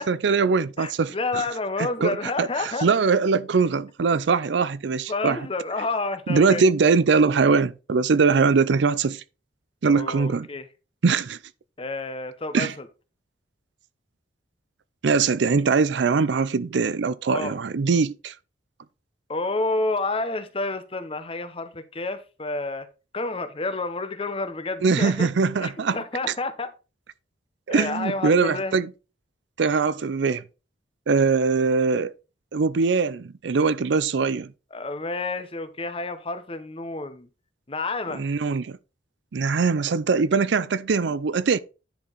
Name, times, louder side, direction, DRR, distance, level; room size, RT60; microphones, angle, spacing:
voice 1, 0.0-1.4 2.0-2.5 2.8-5.4 6.3-9.2 9.8-10.5 11.0-11.4 12.5-12.7 15.0-18.3 24.8-26.0 27.7-28.9 29.6-30.4 31.1-32.1 32.5-34.5 38.1-38.8 39.3-41.6, right 4 dB, 70° right, 0.5 m, -22 dB
voice 2, 0.8-2.9 5.1-6.6 9.9-10.7 11.8-12.8 17.3-17.5 19.3-22.9 23.1-25.3 25.6-26.7 27.7-28.8 34.7-37.3 37.7-38.2, left 3 dB, 30° left, 0.9 m, -29 dB
10.5 x 4.6 x 4.0 m
head